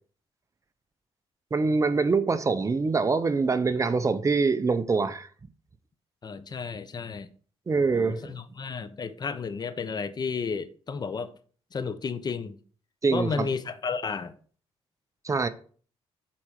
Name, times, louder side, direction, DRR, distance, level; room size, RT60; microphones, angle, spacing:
voice 1, 1.5-5.3 7.7-8.4 13.0-13.5 15.2-15.5, right 4 dB, 30° right, 0.8 m, -24 dB
voice 2, 6.2-7.3 7.9-11.3 11.7-12.6 13.1-14.3, left 5 dB, 40° left, 1.0 m, -32 dB
8.6 x 4.4 x 6.5 m
cardioid pair, 105°, 11 cm